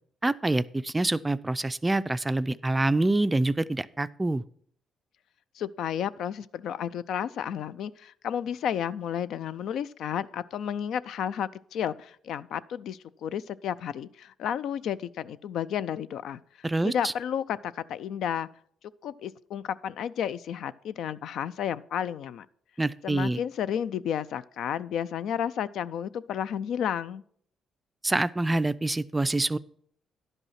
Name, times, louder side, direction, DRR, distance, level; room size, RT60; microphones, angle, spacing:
voice 1, 0.2-4.4 16.6-17.1 22.8-23.4 28.0-29.6, right 2 dB, 15° right, 15 dB, 0.3 m, -26 dB
voice 2, 5.6-16.4 16.8-18.5 19.0-22.5 23.0-27.2, left 9 dB, 75° left, 15 dB, 0.3 m, -32 dB
10.5 x 5.4 x 5.7 m, 0.63 s
cardioid pair, 90°, 0 cm